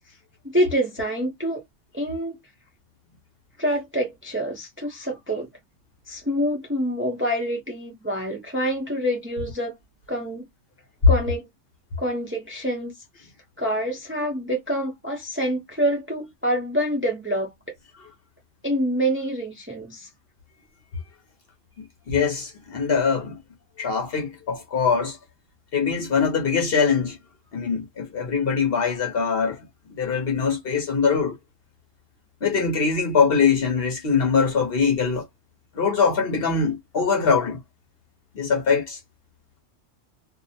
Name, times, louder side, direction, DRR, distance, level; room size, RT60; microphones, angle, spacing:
voice 1, 0.4-1.6 1.9-2.4 3.6-5.5 6.1-9.8 10.1-10.5 11.1-11.5 12.0-12.9 13.6-17.5 18.6-20.1, equal, 15° right, 0.6 m, -26 dB
voice 2, 22.1-23.4 23.8-25.2 25.7-27.2 27.5-29.6 30.0-31.4 32.4-35.2 35.7-37.6 38.3-39.0, left 5 dB, 55° left, 0.9 m, -22 dB
2.6 x 2.0 x 2.7 m
omnidirectional pair, 1.3 m